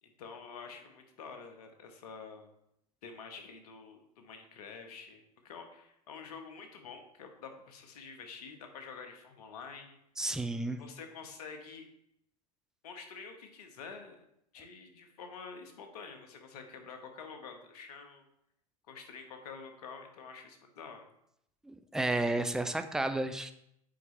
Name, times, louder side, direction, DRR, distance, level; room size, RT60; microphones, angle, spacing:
voice 1, 0.0-2.5 3.0-10.0 10.7-11.9 12.8-14.2 14.5-18.2 18.9-21.1, left 5 dB, 75° left, 5 dB, 1.2 m, -48 dB
voice 2, 10.2-10.8 21.6-23.5, right 2 dB, 5° right, 9 dB, 0.5 m, -32 dB
7.6 x 4.8 x 3.3 m, 0.77 s
hypercardioid pair, 85°, 20 cm